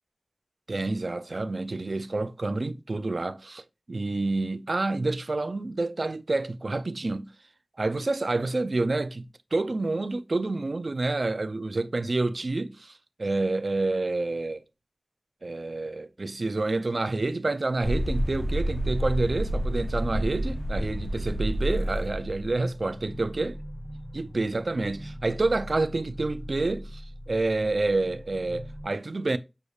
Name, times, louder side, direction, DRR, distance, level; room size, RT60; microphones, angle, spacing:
voice 1, 0.7-7.3 7.8-12.9 13.2-14.6 15.4-23.5 24.1-29.4, right 2 dB, 75° right, 0.3 m, -28 dB
sound 1, 17.8-22.6, equal, 50° left, 0.8 m, -29 dB
sound 2, 18.8-28.9, equal, 30° left, 1.2 m, -41 dB
6.4 x 2.3 x 3.2 m
wide cardioid pair, 55°, 0 cm